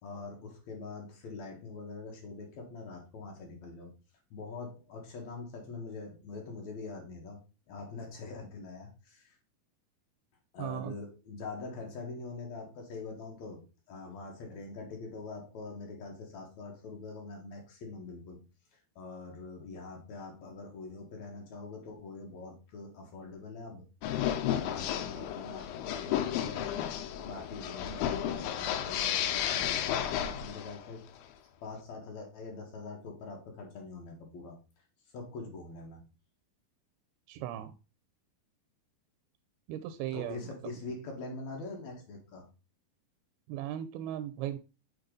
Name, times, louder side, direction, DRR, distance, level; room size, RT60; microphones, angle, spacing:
voice 1, 0.0-3.9 4.3-7.4 7.7-9.3 10.5-18.4 19.0-23.9 24.4-26.9 27.2-31.0 31.6-34.6 35.1-36.0 40.1-42.5, left 3 dB, 60° left, 0 dB, 2.3 m, -44 dB
voice 2, 10.6-10.9 37.3-37.7 39.7-40.4 43.5-44.6, right 12 dB, 90° right, 9 dB, 2.5 m, -37 dB
sound 1, 24.0-30.9, left 10 dB, 80° left, 2.3 m, -33 dB
6.5 x 4.1 x 3.8 m, 0.31 s
omnidirectional pair, 4.3 m